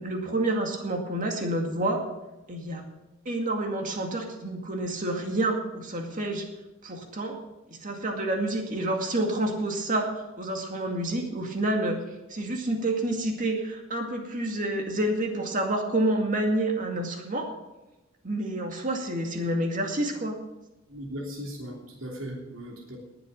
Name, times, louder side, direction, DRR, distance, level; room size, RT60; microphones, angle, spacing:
voice 1, 0.0-2.0 2.5-2.8 3.3-6.4 6.8-7.4 7.8-10.1 10.4-12.0 12.3-17.5 18.2-20.4, right 1 dB, 40° right, 2 dB, 2.2 m, -28 dB
voice 2, 20.9-23.0, equal, 85° right, -2 dB, 3.2 m, -38 dB
19.0 x 8.0 x 5.4 m, 1.0 s
head